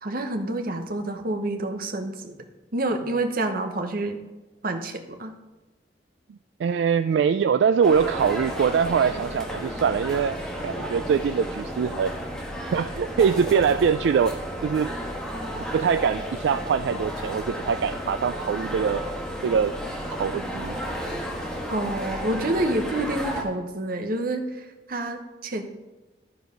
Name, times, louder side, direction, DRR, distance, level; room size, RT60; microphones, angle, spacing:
voice 1, 0.0-2.4 2.7-4.2 4.6-5.3 21.7-25.6, right 1 dB, 55° right, 6 dB, 1.0 m, -28 dB
voice 2, 6.3-10.4 10.6-12.2 12.7-14.4 14.6-14.9 15.7-19.0 19.4-19.8 20.2-20.8, right 6 dB, 75° right, 11 dB, 0.3 m, -23 dB
sound 1, 7.8-23.4, equal, 5° left, 1.5 m, -33 dB
13.0 x 4.7 x 5.2 m, 1.1 s
head